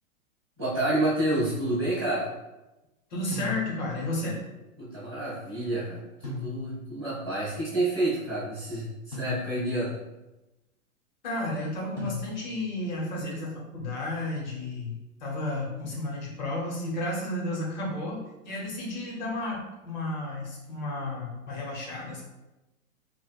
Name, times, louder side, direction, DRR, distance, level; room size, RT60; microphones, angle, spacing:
voice 1, 0.6-2.3 4.8-10.0, right 1 dB, 20° right, -13 dB, 0.4 m, -29 dB
voice 2, 3.1-4.4 11.2-22.2, left 1 dB, 35° left, -2 dB, 0.7 m, -32 dB
sound 1, 3.3-4.1 6.2-7.0 9.1-9.9 12.0-12.7, left 4 dB, 10° left, 1.0 m, -38 dB
4.6 x 2.1 x 2.3 m, 1.0 s
hypercardioid pair, 175°, 42 cm